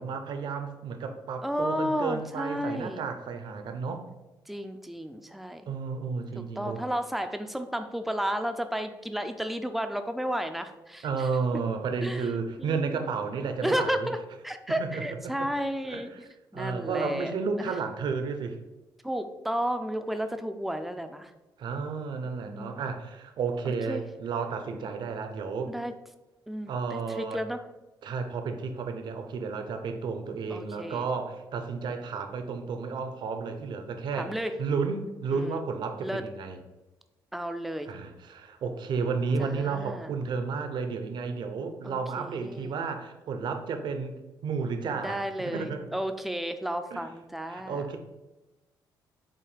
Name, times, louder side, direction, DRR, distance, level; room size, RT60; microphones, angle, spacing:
voice 1, 0.0-4.1 5.7-6.8 11.0-14.1 14.8-15.5 15.9-16.0 16.5-18.6 21.6-25.7 26.7-27.4 28.0-36.6 37.9-45.9 46.9-47.1 47.5-48.0, right 5 dB, 65° right, 7 dB, 0.8 m, -32 dB
voice 2, 1.4-3.1 4.5-5.7 6.3-11.3 12.0-12.3 12.6-13.1 13.6-14.2 14.4-17.3 17.6-17.7 19.0-21.3 22.5-22.8 23.9-24.0 25.7-25.9 26.5-27.6 30.5-31.1 34.1-34.5 35.3-35.6 36.0-36.2 37.3-37.9 39.4-40.1 41.8-42.8 45.0-47.9, equal, ahead, 8 dB, 0.4 m, -32 dB
7.6 x 2.6 x 5.0 m, 1.1 s
cardioid pair, 130°, 8 cm